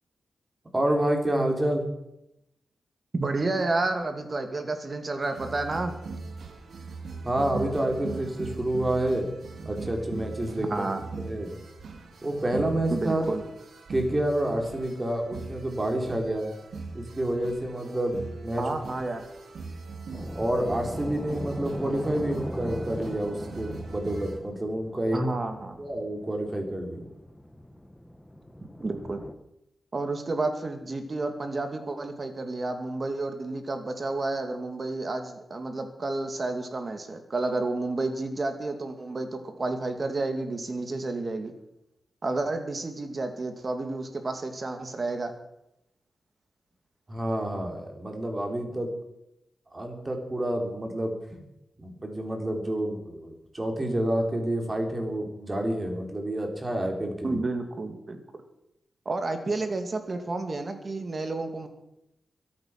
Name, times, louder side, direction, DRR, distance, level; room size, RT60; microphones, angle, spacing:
voice 1, 0.7-1.8 7.2-9.3 9.6-10.7 11.2-11.6 12.2-13.2 13.9-16.5 16.9-18.8 20.3-25.2 25.8-27.0 47.1-48.9 49.7-51.4 51.8-57.4, right 1 dB, 25° right, 2 dB, 3.9 m, -28 dB
voice 2, 3.1-5.9 10.6-11.0 12.9-13.4 18.6-19.2 25.1-25.8 28.8-29.2 29.9-41.5 42.2-45.3 57.2-58.2 59.1-61.7, right 2 dB, 40° right, 6 dB, 2.3 m, -30 dB
sound 1, 5.2-24.4, right 3 dB, 75° right, 2.6 m, -40 dB
sound 2, 20.1-29.3, left 1 dB, 10° left, 1.2 m, -40 dB
23.5 x 8.9 x 6.0 m, 0.85 s
cardioid pair, 90°, 0 cm